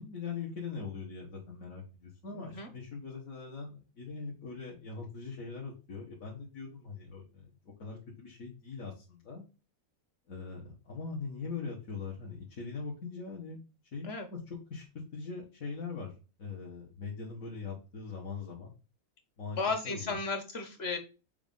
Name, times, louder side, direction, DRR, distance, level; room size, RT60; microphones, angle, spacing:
voice 1, 0.0-9.5 10.3-13.6 13.9-18.7 19.4-20.2, left 4 dB, 70° left, -3 dB, 1.8 m, -41 dB
voice 2, 2.4-2.7 14.0-14.3 19.5-21.0, left 4 dB, 50° left, 6 dB, 1.3 m, -34 dB
6.9 x 2.5 x 5.2 m, 0.32 s
omnidirectional pair, 1.5 m